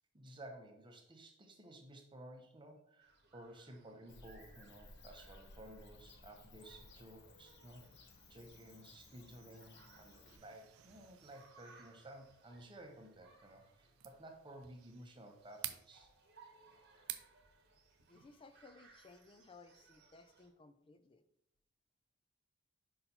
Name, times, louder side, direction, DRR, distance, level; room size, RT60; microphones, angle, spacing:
voice 1, 0.1-16.1, right 1 dB, 20° right, 3 dB, 0.8 m, -55 dB
sound 1, 3.0-20.5, right 4 dB, 50° right, 1.0 m, -66 dB
Bird / Cricket, 4.1-10.4, left 3 dB, 50° left, 0.7 m, -60 dB
sound 2, 10.2-18.7, right 13 dB, 70° right, 0.4 m, -53 dB
voice 2, 18.0-21.2, left 3 dB, 25° left, 11 dB, 0.4 m, -60 dB
5.5 x 4.2 x 4.2 m, 0.77 s
head